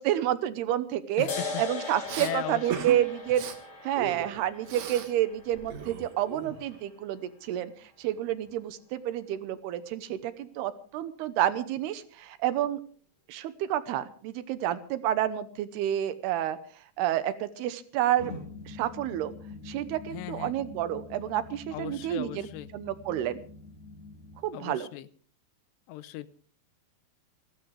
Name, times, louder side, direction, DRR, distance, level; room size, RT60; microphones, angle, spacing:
voice 1, 0.0-1.3 1.6-3.5 3.8-7.7 8.0-12.8 13.3-16.6 17.0-18.3 18.7-19.3 19.7-22.5 22.7-23.4 24.4-24.9, right 12 dB, 80° right, 13 dB, 2.9 m, -29 dB
voice 2, 1.2-1.6 2.2-2.9 20.1-20.6 21.7-22.7 24.5-25.1 25.9-26.3, left 15 dB, 90° left, 15 dB, 3.0 m, -38 dB
sound 1, 1.3-8.3, left 4 dB, 40° left, 3.8 m, -41 dB
Respiratory sounds, 2.1-2.3 2.7-3.0 3.3-3.6 4.0-5.1 5.4-6.8, right 8 dB, 60° right, 2.3 m, -37 dB
sound 2, 18.2-24.4, left 3 dB, 60° left, 5.9 m, -45 dB
28.5 x 12.5 x 3.3 m, 0.43 s
omnidirectional pair, 4.7 m